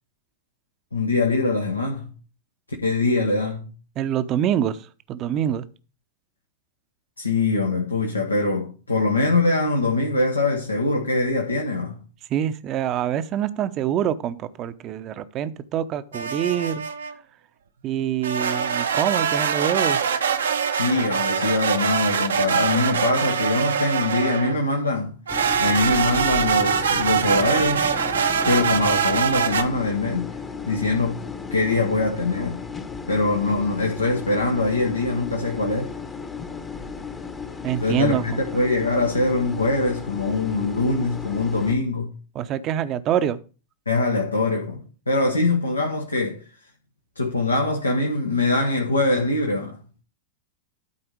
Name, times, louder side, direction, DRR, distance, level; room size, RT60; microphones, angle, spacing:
voice 1, 0.9-2.1 2.8-3.7 7.2-12.0 20.7-25.2 25.6-27.9 28.4-30.4 30.7-32.6 33.1-35.9 37.8-42.1 43.9-46.5 47.2-49.8, left 2 dB, 80° left, 1.3 m, -23 dB
voice 2, 4.0-4.8 5.1-5.6 12.3-16.8 17.8-20.1 37.6-38.2 42.3-43.4, right 10 dB, 35° right, 0.8 m, -25 dB
sound 1, 16.1-17.1 18.2-24.6 25.3-29.6, right 7 dB, 70° right, 0.8 m, -23 dB
sound 2, 25.3-41.7, left 5 dB, 15° left, 1.0 m, -35 dB
12.5 x 4.3 x 5.0 m
figure-of-eight pair, 90°, 0 cm